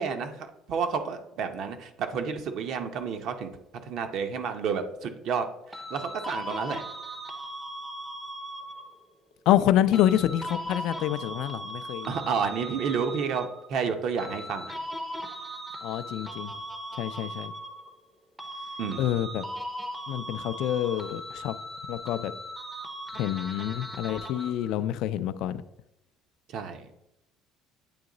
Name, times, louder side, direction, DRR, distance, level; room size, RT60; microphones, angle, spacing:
voice 1, 0.0-3.5 3.8-6.8 12.1-14.7 18.8-19.2 26.5-26.9, right 6 dB, 55° right, 7 dB, 0.7 m, -31 dB
sound 1, 5.7-9.1 9.9-13.7 14.2-18.1 18.4-24.7, equal, 5° right, 0.6 m, -38 dB
voice 2, 9.5-12.1 15.8-16.5 17.0-17.5 19.0-19.4 20.1-21.5 21.9-22.3 23.2-25.6, left 12 dB, 65° left, 13 dB, 0.3 m, -27 dB
8.6 x 3.0 x 3.8 m, 0.88 s
cardioid pair, 155°, 0 cm